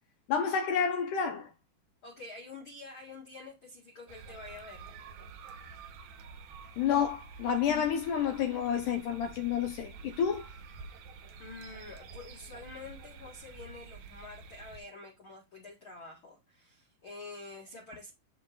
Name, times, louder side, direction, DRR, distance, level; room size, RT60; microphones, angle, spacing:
voice 1, 0.3-1.5 6.8-10.5, left 7 dB, 75° left, 2.0 m, -29 dB
voice 2, 2.0-4.9 11.4-18.1, left 3 dB, 40° left, 2.0 m, -47 dB
sound 1, 4.1-14.8, right 5 dB, 70° right, 1.7 m, -49 dB
11.5 x 3.9 x 2.4 m
omnidirectional pair, 4.5 m